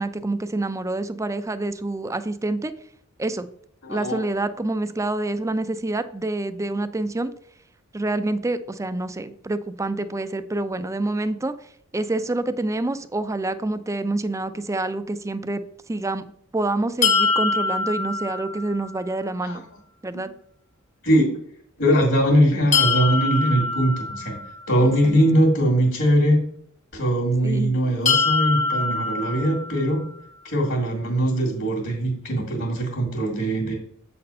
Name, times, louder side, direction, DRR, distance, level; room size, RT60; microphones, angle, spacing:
voice 1, 0.0-2.7 3.2-3.5 3.9-7.3 7.9-11.5 11.9-15.6 15.9-16.2 16.5-19.6 20.0-20.3 24.8-25.2 27.4-27.7, right 2 dB, 15° right, 11 dB, 0.4 m, -27 dB
voice 2, 3.8-4.2 19.4-19.6 20.1-20.2 21.0-21.3 21.8-24.4 24.7-26.5 26.9-30.1 30.4-33.7, equal, 65° left, -4 dB, 2.1 m, -21 dB
sound 1, 17.0-19.0 22.7-24.8 28.1-30.1, left 4 dB, 35° left, 0.9 m, -24 dB
7.6 x 4.2 x 5.4 m, 0.65 s
head